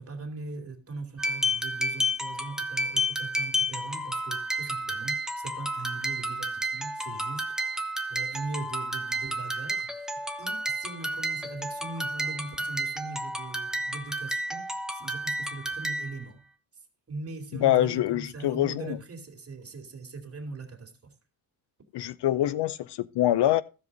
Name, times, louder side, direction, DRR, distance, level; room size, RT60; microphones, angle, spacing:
voice 1, 0.0-7.8 8.1-16.4 17.1-21.1, right 3 dB, 35° right, 2.4 m, -40 dB
sound 1, 1.2-16.2, equal, ahead, 0.8 m, -31 dB
voice 2, 17.6-19.0 21.9-23.6, left 13 dB, 75° left, 0.6 m, -25 dB
15.0 x 5.1 x 3.9 m
cardioid pair, 115°, 41 cm